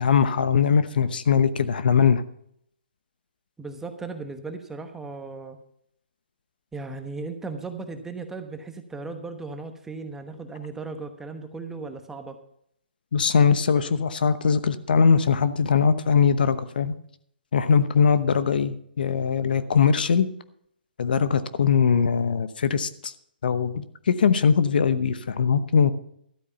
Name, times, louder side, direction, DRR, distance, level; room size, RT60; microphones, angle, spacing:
voice 1, 0.0-2.2 13.1-16.9 17.5-20.3 21.0-23.1 23.4-25.9, left 6 dB, 65° left, 12 dB, 0.9 m, -21 dB
voice 2, 3.6-5.6 6.7-12.4, right 3 dB, 5° right, 7 dB, 1.1 m, -36 dB
13.0 x 8.4 x 5.8 m, 0.70 s
hypercardioid pair, 140°, 5 cm